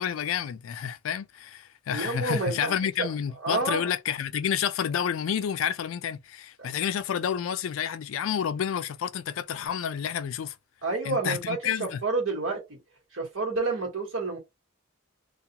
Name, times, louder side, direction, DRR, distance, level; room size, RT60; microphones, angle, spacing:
voice 1, 0.0-10.6 11.0-12.0, left 8 dB, 90° left, 0.4 m, -29 dB
voice 2, 1.9-2.7 3.0-3.1 3.4-3.8 10.8-12.8 13.1-14.4, right 3 dB, 90° right, 1.2 m, -29 dB
2.3 x 2.3 x 2.8 m
head